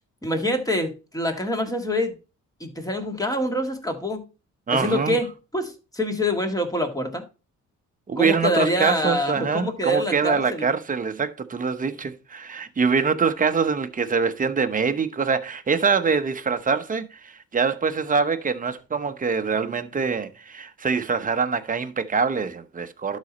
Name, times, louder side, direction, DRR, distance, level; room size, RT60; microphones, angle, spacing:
voice 1, 0.2-2.1 2.6-4.2 4.7-5.3 5.5-7.2 8.2-10.6, left 1 dB, 10° left, 1.8 m, -25 dB
voice 2, 4.7-5.2 8.1-23.2, right 5 dB, 25° right, 0.9 m, -24 dB
11.5 x 4.2 x 4.1 m
cardioid pair, 90°, 30 cm